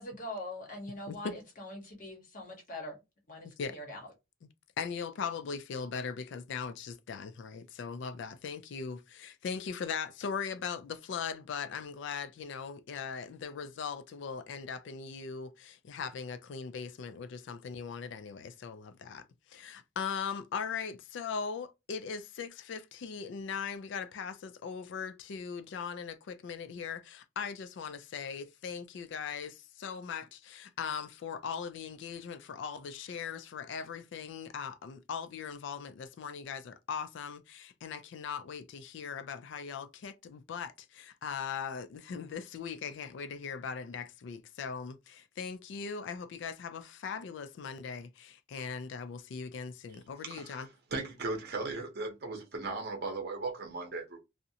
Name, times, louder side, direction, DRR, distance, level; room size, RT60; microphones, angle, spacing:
voice 1, 0.0-3.0 3.3-4.1, left 1 dB, 45° left, 0.8 m, -43 dB
voice 2, 1.1-1.4 3.6-3.8 4.8-50.7, left 6 dB, 65° left, 0.3 m, -39 dB
voice 3, 50.2-50.6 50.9-54.2, right 3 dB, 55° right, 0.7 m, -37 dB
2.4 x 2.0 x 2.7 m
head